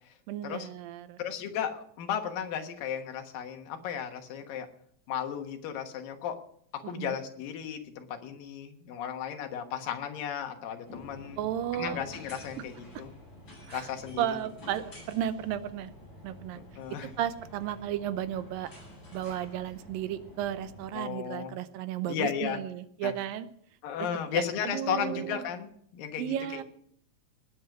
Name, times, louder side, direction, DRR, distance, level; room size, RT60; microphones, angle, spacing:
voice 1, 0.3-1.2 6.9-7.2 11.4-12.0 12.6-12.7 13.7-13.9 14.2-15.9 16.2-16.6 17.0-18.7 19.1-23.5 24.3-25.4 26.2-26.6, right 11 dB, 85° right, 12 dB, 2.5 m, -34 dB
voice 2, 1.2-4.7 5.1-6.4 6.7-11.4 11.7-13.1 13.7-14.4 16.8-17.1 20.9-21.5 22.1-22.6 23.0-23.1 23.8-26.6, left 8 dB, 80° left, 5 dB, 3.0 m, -35 dB
sound 1, 10.8-20.9, equal, 30° left, 8.3 m, -49 dB
19.5 x 7.9 x 6.0 m, 0.67 s
omnidirectional pair, 4.0 m